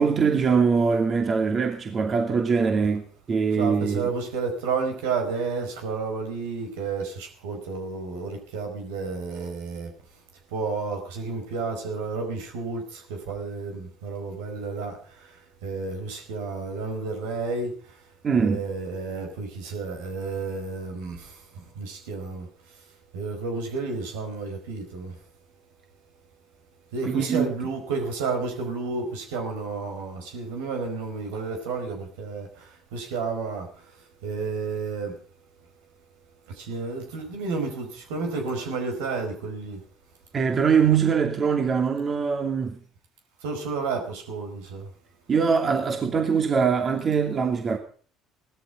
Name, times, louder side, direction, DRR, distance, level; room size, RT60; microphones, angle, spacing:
voice 1, 0.0-3.0 3.3-4.1 18.2-18.6 27.0-27.5 40.3-42.8 45.3-47.8, right 6 dB, 40° right, 2.6 m, -22 dB
voice 2, 3.6-9.9 10.5-15.0 15.6-17.7 18.4-21.2 21.8-22.4 23.1-25.1 26.9-32.5 32.9-33.7 34.2-35.1 36.6-39.8 43.4-44.8, right 4 dB, 80° right, 4.9 m, -31 dB
17.0 x 13.0 x 5.7 m
hypercardioid pair, 65°, 0 cm